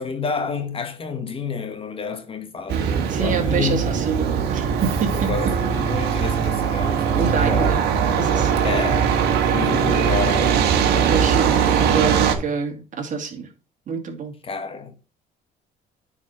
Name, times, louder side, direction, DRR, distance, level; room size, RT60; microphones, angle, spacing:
voice 1, 0.0-4.0 5.1-7.8 8.6-9.1 9.5-10.7 14.4-14.9, left 5 dB, 35° left, 1.2 m, -29 dB
Truck, 2.7-12.3, right 7 dB, 75° right, 1.5 m, -20 dB
voice 2, 3.1-5.3 7.1-8.6 10.9-13.5 13.9-14.3, right 6 dB, 50° right, 2.3 m, -27 dB
9.3 x 4.3 x 4.3 m
cardioid pair, 110°, 17 cm